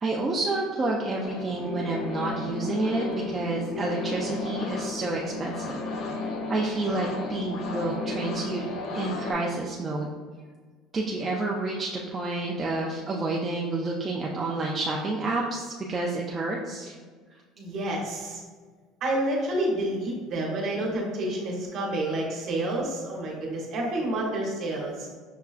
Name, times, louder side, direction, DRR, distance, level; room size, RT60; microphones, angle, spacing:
voice 1, 0.0-6.1 6.5-8.7 8.9-10.1 10.9-17.0, right 2 dB, 20° right, -2 dB, 0.3 m, -29 dB
sound 1, 1.2-9.3, left 3 dB, 50° left, 0.5 m, -34 dB
voice 2, 17.6-18.4 19.0-25.1, right 1 dB, 45° right, -2 dB, 1.0 m, -29 dB
5.7 x 2.2 x 2.4 m, 1.5 s
cardioid pair, 145°, 0 cm